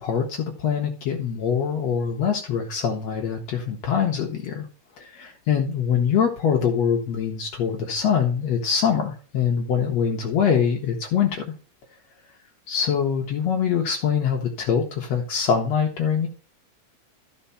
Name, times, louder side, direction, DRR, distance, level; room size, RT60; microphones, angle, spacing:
voice 1, 0.0-4.7 5.0-11.4 12.7-16.3, left 7 dB, 65° left, 2 dB, 2.1 m, -24 dB
13.0 x 4.5 x 5.7 m, 0.41 s
omnidirectional pair, 3.4 m